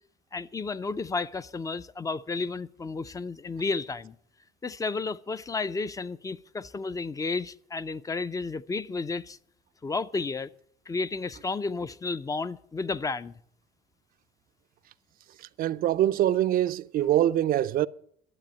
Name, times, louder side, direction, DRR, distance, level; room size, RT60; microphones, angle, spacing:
voice 1, 0.3-4.1 4.6-9.4 9.8-10.5 10.9-13.3, left 3 dB, 20° left, 0.5 m, -32 dB
voice 2, 15.6-17.9, right 12 dB, 60° right, 0.4 m, -24 dB
12.0 x 7.6 x 8.6 m
cardioid pair, 110°, 17 cm